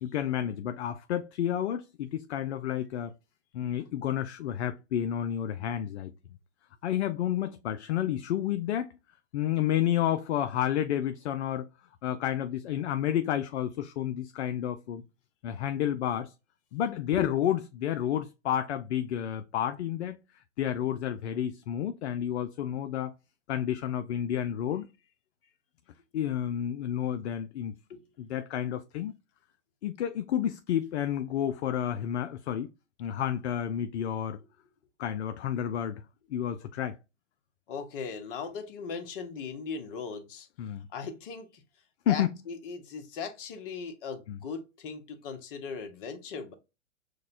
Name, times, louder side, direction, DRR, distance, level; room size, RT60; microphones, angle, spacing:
voice 1, 0.0-3.1 3.5-6.1 6.8-9.0 9.3-11.7 12.0-15.0 15.4-16.3 16.7-20.2 20.6-23.1 23.5-24.9 26.1-27.8 28.2-29.1 29.8-32.7 33.0-34.4 35.0-36.0 36.3-37.0 40.6-40.8 42.1-42.3 44.3-44.4, left 10 dB, 60° left, 0.5 m, -30 dB
voice 2, 37.7-40.5 40.9-41.6 42.1-46.5, left 5 dB, 45° left, 1.0 m, -38 dB
6.4 x 2.2 x 2.5 m
hypercardioid pair, 120°, 39 cm